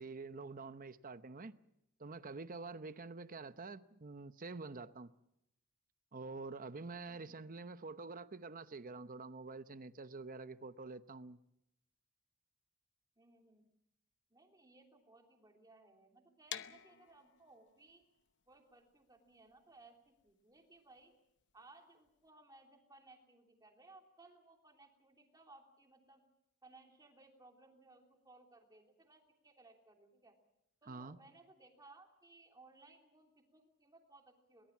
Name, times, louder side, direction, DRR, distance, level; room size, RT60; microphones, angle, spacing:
voice 1, 0.0-1.5 2.0-5.1 6.1-11.4 30.8-31.2, right 3 dB, 40° right, 0.8 m, -47 dB
voice 2, 7.1-7.5 13.2-13.7 14.3-18.0 18.5-21.1 21.5-26.2 26.6-30.3 30.8-34.7, right 2 dB, 15° right, 3.2 m, -62 dB
sound 1, 16.5-22.3, left 9 dB, 55° left, 0.9 m, -52 dB
22.5 x 19.5 x 7.3 m
head